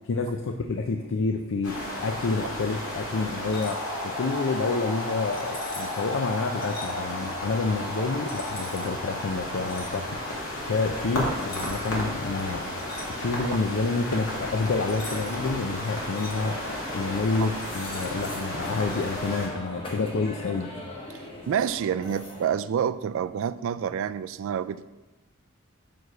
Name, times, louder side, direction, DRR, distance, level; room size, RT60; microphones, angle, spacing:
voice 1, 0.1-12.7 13.1-16.6 16.9-20.7, left 3 dB, 65° left, 4 dB, 0.5 m, -28 dB
sound 1, 1.6-19.5, left 1 dB, 80° left, 2.2 m, -33 dB
sound 2, 3.4-3.8 5.3-6.1 6.6-6.9 8.3-8.9 9.6-9.9 11.4-12.0 12.3-13.5 14.9-15.4 15.8-16.4 17.4-18.3 18.9-19.1, left 2 dB, 45° left, 1.6 m, -44 dB
sound 3, 7.9-22.5, left 1 dB, 25° left, 1.1 m, -43 dB
voice 2, 21.5-24.9, right 8 dB, 65° right, 15 dB, 0.3 m, -28 dB
6.1 x 4.8 x 6.5 m, 1.1 s
head